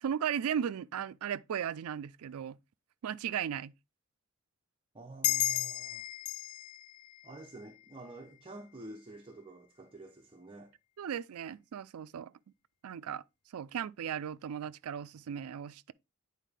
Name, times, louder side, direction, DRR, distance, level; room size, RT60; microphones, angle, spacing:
voice 1, 0.0-2.6 3.0-3.7 11.0-12.3 12.8-13.2 13.5-15.9, right 8 dB, 85° right, 0.4 m, -36 dB
voice 2, 4.9-6.1 7.2-10.7, right 2 dB, 25° right, 0.7 m, -49 dB
sound 1, 5.2-8.3, left 14 dB, 85° left, 0.4 m, -35 dB
9.1 x 4.4 x 3.3 m
head